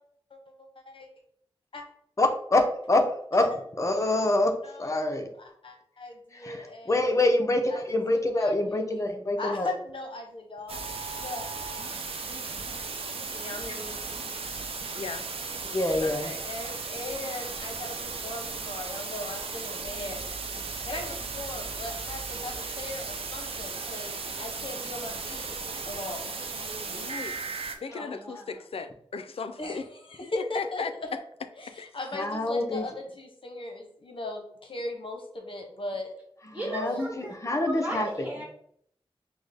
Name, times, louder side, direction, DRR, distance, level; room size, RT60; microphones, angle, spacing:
voice 1, 0.3-1.1 1.7-1.8 4.6-4.9 5.4-7.0 7.7-8.0 8.3-9.1 9.4-10.8 11.1-11.4 13.3-14.0 16.0-20.2 20.9-25.5 25.9-26.4 29.6-30.8 31.6-36.1 36.5-37.1, left 2 dB, 65° left, 2 dB, 0.8 m, -38 dB
voice 2, 2.2-3.1 3.3-3.5 3.8-4.5 4.8-5.3 6.3-9.7 15.6-16.3 32.1-32.8 36.5-38.3, left 2 dB, 30° left, 4 dB, 0.6 m, -26 dB
sound 1, 10.7-27.8, right 4 dB, 80° right, 0.5 m, -36 dB
voice 3, 14.9-15.3 26.8-27.4 27.8-29.9 30.5-30.9 31.8-31.9, left 5 dB, 80° left, 9 dB, 0.4 m, -36 dB
voice 4, 27.9-28.5 36.5-38.4, right 1 dB, 15° right, -2 dB, 1.2 m, -36 dB
6.0 x 2.1 x 3.4 m, 0.66 s
wide cardioid pair, 100°, 10 cm